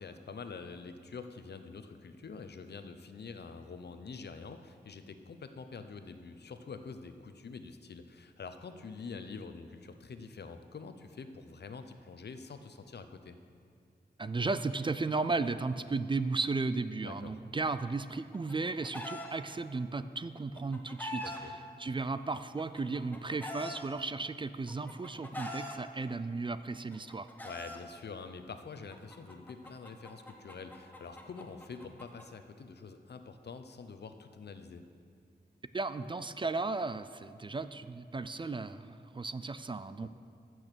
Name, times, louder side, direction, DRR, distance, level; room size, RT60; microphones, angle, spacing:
voice 1, 0.0-13.4 17.0-17.4 21.2-21.5 27.4-34.8, left 4 dB, 75° left, 8 dB, 0.7 m, -46 dB
voice 2, 14.2-27.3 35.7-40.1, right 3 dB, 30° right, 12 dB, 0.3 m, -35 dB
Chicken rooster, 18.1-19.3 20.4-21.4 22.4-23.8 24.7-25.7 26.7-27.8 28.9-32.2, left 1 dB, 10° left, 1.2 m, -43 dB
15.0 x 6.3 x 6.8 m, 2.2 s
wide cardioid pair, 125°, 17 cm